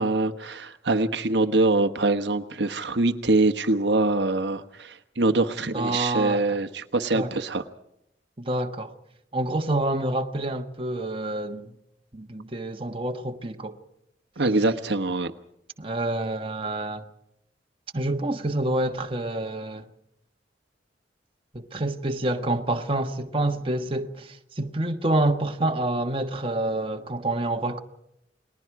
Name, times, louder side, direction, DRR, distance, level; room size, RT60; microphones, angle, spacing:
voice 1, 0.0-7.6 14.4-15.3, right 2 dB, 75° right, 1.2 m, -24 dB
voice 2, 5.7-6.6 7.1-7.3 8.4-8.9 9.3-11.8 12.1-13.8 15.8-17.0 17.9-19.8 21.5-27.8, right 1 dB, 30° right, 1.4 m, -27 dB
30.0 x 21.0 x 4.8 m
head